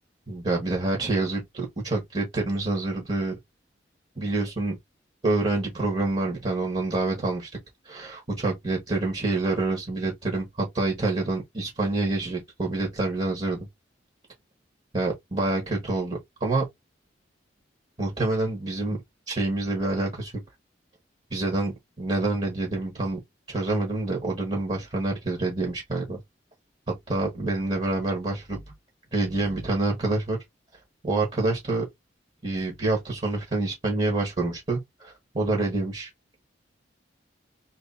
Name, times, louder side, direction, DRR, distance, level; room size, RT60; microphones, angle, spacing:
voice 1, 0.3-3.3 4.2-4.8 5.2-7.5 7.9-13.6 14.9-16.6 18.0-19.0 19.3-20.3 21.3-21.7 22.0-23.2 23.5-26.2 27.1-28.6 29.1-30.4 31.0-31.8 32.4-36.1, right 2 dB, 35° right, 1.3 m, -27 dB
3.0 x 2.8 x 4.1 m
head